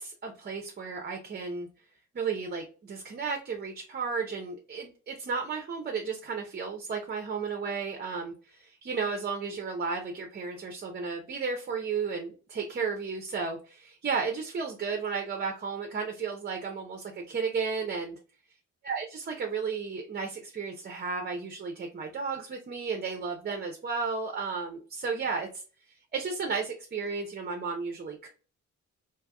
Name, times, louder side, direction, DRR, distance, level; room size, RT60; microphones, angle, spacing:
voice 1, 0.0-1.7 2.1-18.2 18.8-25.6 26.1-28.3, right 5 dB, 35° right, 3 dB, 0.7 m, -33 dB
3.3 x 2.9 x 2.2 m, 0.37 s
cardioid pair, 90°, 30 cm